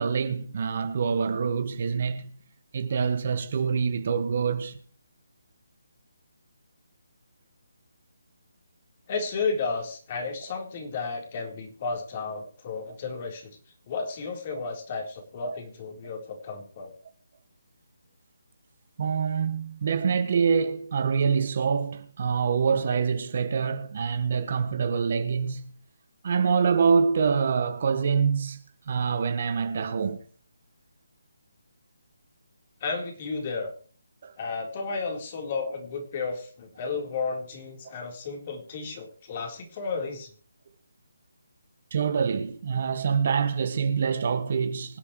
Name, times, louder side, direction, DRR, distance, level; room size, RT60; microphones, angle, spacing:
voice 1, 0.0-2.4 2.7-4.8 15.5-15.6 19.0-25.8 26.2-28.6 28.9-30.2 34.2-34.3 41.9-45.0, right 6 dB, 45° right, 1.8 m, -25 dB
voice 2, 9.1-13.5 13.9-16.9 32.8-33.7 34.4-40.3, left 4 dB, 35° left, 4.0 m, -33 dB
25.0 x 8.6 x 3.2 m
figure-of-eight pair, 155°, 0 cm